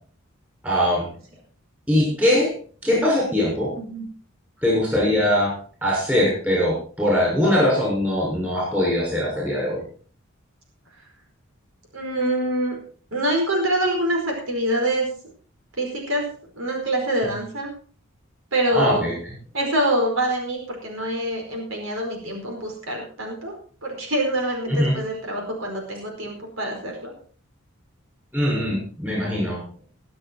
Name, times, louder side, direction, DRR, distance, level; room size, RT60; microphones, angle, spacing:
voice 1, 0.6-1.1 1.9-2.5 2.8-3.7 4.6-5.5 5.8-9.8 18.7-19.1 24.7-25.0 28.3-29.6, left 1 dB, 10° right, -4 dB, 6.6 m, -21 dB
voice 2, 3.8-4.1 11.9-12.7 13.1-15.1 15.8-16.2 16.6-17.7 18.5-19.1 19.5-23.5 23.8-27.1, right 1 dB, 70° right, 1 dB, 4.8 m, -25 dB
22.0 x 7.7 x 4.6 m, 0.43 s
head